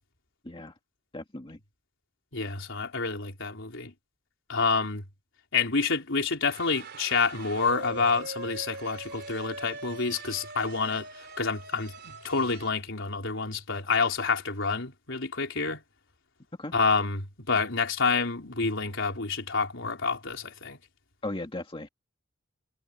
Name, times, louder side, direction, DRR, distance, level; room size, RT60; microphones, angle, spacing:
voice 1, 1.1-1.6 16.6-16.7 21.2-21.9, left 2 dB, 25° left, 2.0 m, -37 dB
voice 2, 2.3-3.9 4.5-5.0 5.5-15.8 16.7-20.8, left 4 dB, 65° left, 4.4 m, -28 dB
sound 1, 6.5-12.7, right 3 dB, 55° right, 4.4 m, -42 dB
head